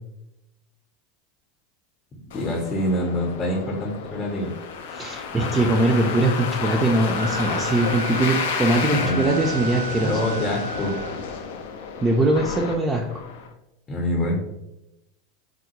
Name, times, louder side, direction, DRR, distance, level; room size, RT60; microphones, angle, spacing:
sound 1, 2.3-13.5, left 6 dB, 70° left, 0.3 m, -31 dB
voice 1, 2.3-4.5 8.9-9.3 10.0-10.9 13.9-14.4, left 1 dB, 25° left, -1 dB, 0.7 m, -25 dB
voice 2, 4.9-10.2 12.0-13.2, right 2 dB, 20° right, -1 dB, 0.4 m, -22 dB
Wind instrument woodwind instrument, 7.1-11.4, right 4 dB, 80° right, 0.5 m, -33 dB
3.6 x 2.1 x 2.9 m, 0.91 s
hypercardioid pair, 90°, 0 cm